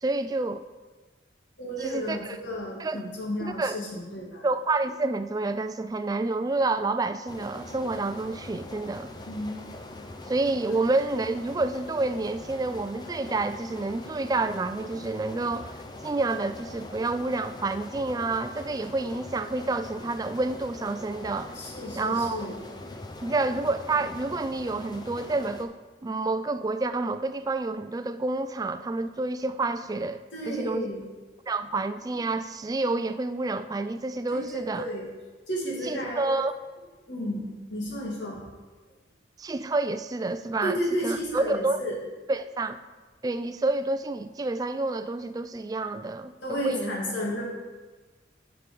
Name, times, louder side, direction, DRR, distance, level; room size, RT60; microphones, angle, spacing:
voice 1, 0.0-0.6 1.8-2.4 2.8-3.0 3.4-3.8 4.4-9.1 10.3-21.6 22.0-22.4 23.2-30.9 31.5-34.9 35.8-36.5 39.4-41.8 42.3-42.8 43.2-47.0, right 3 dB, 20° right, 10 dB, 0.3 m, -29 dB
voice 2, 1.6-4.5 9.3-9.5 21.5-22.6 30.3-31.0 34.3-35.1 35.5-36.3 37.1-38.4 40.6-42.0 46.4-47.4, equal, 85° left, -3 dB, 2.2 m, -32 dB
sound 1, 7.3-25.6, left 2 dB, 25° left, 0.6 m, -42 dB
8.0 x 6.0 x 5.2 m, 1.3 s
head